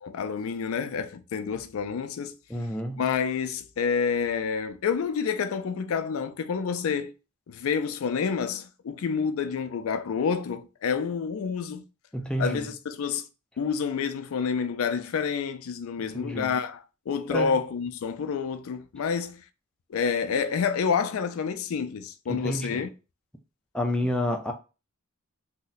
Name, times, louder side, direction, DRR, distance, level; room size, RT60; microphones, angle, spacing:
voice 1, 0.0-2.3 3.0-7.1 7.5-11.8 12.4-13.2 13.6-19.4 19.9-22.9, left 6 dB, 90° left, 0.4 m, -28 dB
voice 2, 2.5-3.0 12.1-12.7 16.1-16.5 17.3-17.6 22.3-22.8 23.7-24.5, equal, 5° left, 0.4 m, -29 dB
2.6 x 2.1 x 3.8 m
head